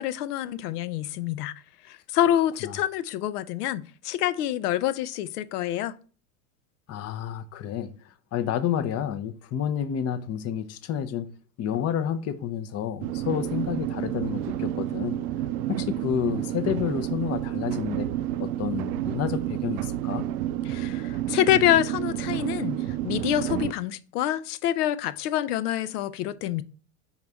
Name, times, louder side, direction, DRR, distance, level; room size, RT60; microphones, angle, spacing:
voice 1, 0.0-1.5 1.9-5.9 20.7-22.8 23.0-26.6, left 12 dB, 75° left, 0.7 m, -26 dB
voice 2, 6.9-11.3 11.6-15.2 15.7-18.1 18.4-20.3, left 9 dB, 30° left, 0.7 m, -30 dB
sound 1, 13.0-23.7, right 12 dB, 70° right, 0.6 m, -30 dB
5.6 x 4.8 x 3.5 m
hypercardioid pair, 110°, 47 cm